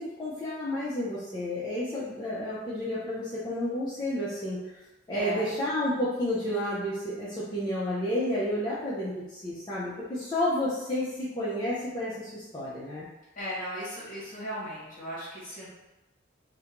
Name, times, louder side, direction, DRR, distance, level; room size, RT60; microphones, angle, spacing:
voice 1, 0.0-4.8 5.1-13.1, left 1 dB, 25° left, -10 dB, 0.4 m, -31 dB
voice 2, 5.1-5.5 13.3-15.7, equal, 45° left, -8 dB, 1.2 m, -36 dB
2.4 x 2.1 x 2.9 m, 1.0 s
head